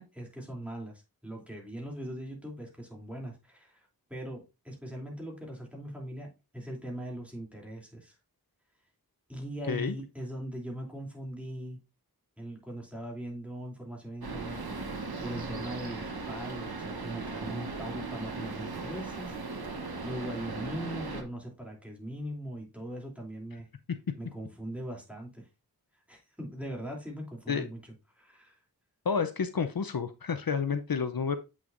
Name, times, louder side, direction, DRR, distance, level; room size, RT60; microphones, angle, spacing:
voice 1, 0.0-8.2 9.3-11.8 12.4-23.7 24.2-25.5 26.1-27.8 28.1-28.6, right 1 dB, 5° right, -1 dB, 2.9 m, -40 dB
sound 1, 14.2-21.2, right 3 dB, 80° right, 1.1 m, -38 dB
voice 2, 29.1-31.4, left 6 dB, 70° left, 9 dB, 0.6 m, -30 dB
7.8 x 6.2 x 2.5 m, 0.27 s
wide cardioid pair, 50°, 37 cm